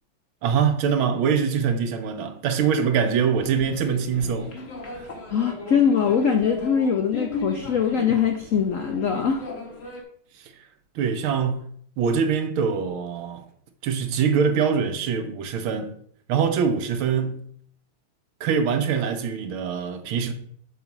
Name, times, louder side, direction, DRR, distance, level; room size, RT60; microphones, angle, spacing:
voice 1, 0.4-4.6 4.9-5.1 10.9-11.7 12.0-13.4 13.8-16.0 16.3-17.4 18.4-20.3, right 6 dB, 75° right, 1.6 m, -23 dB
sound 1, 3.4-10.0, left 2 dB, 40° left, 1.6 m, -37 dB
voice 2, 5.3-9.4, left 7 dB, 80° left, 0.7 m, -22 dB
7.3 x 4.0 x 5.9 m
omnidirectional pair, 2.3 m